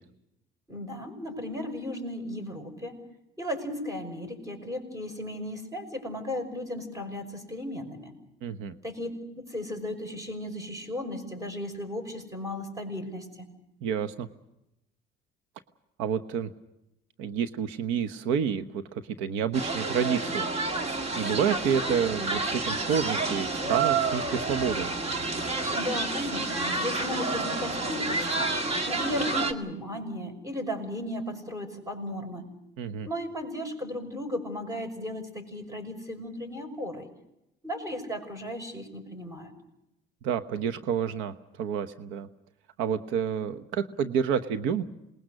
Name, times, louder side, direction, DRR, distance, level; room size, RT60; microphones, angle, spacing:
voice 1, 0.7-3.0 3.4-8.1 8.8-13.5 25.7-28.5 28.9-32.5 33.0-37.1 37.6-39.5, left 1 dB, 15° right, 6 dB, 5.9 m, -35 dB
voice 2, 8.4-8.7 13.8-14.3 16.0-16.5 17.2-20.5 20.9-24.9 32.8-33.1 40.2-42.3 42.8-44.8, right 7 dB, 90° right, 10 dB, 1.1 m, -29 dB
sound 1, 19.5-29.5, right 3 dB, 30° right, 2.1 m, -29 dB
27.0 x 20.5 x 6.5 m, 0.88 s
cardioid pair, 120°, 20 cm